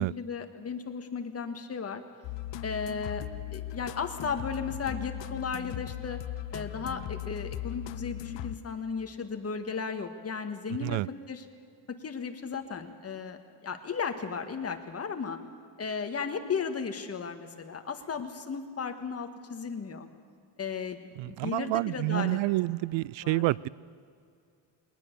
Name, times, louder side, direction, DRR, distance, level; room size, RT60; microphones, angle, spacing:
voice 1, 0.0-2.0 2.6-3.2 3.5-6.2 6.5-11.0 11.3-11.4 11.9-15.4 15.8-20.1 20.6-22.4 23.2-23.4, left 5 dB, 30° left, 6 dB, 1.7 m, -35 dB
sound 1, 2.2-9.0, left 12 dB, 70° left, 0.8 m, -38 dB
voice 2, 21.2-23.7, right 19 dB, 80° right, 24 dB, 0.5 m, -28 dB
20.5 x 19.5 x 6.8 m, 2.4 s
cardioid pair, 120°, 45 cm